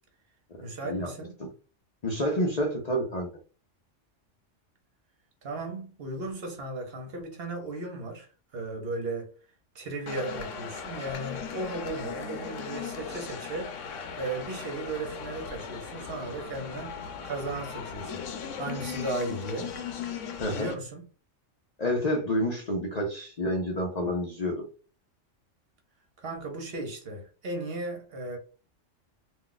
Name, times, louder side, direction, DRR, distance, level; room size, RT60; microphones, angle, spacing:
voice 1, 0.6-1.4 5.4-9.3 9.7-13.7 14.2-17.0 17.2-19.7 20.5-21.1 26.2-28.4, right 2 dB, 55° right, 1.0 m, -36 dB
voice 2, 2.0-3.3 20.4-20.7 21.8-24.7, equal, 45° left, 0.6 m, -29 dB
sound 1, 10.1-20.7, left 6 dB, 90° left, 0.9 m, -38 dB
2.4 x 2.3 x 3.8 m
omnidirectional pair, 1.2 m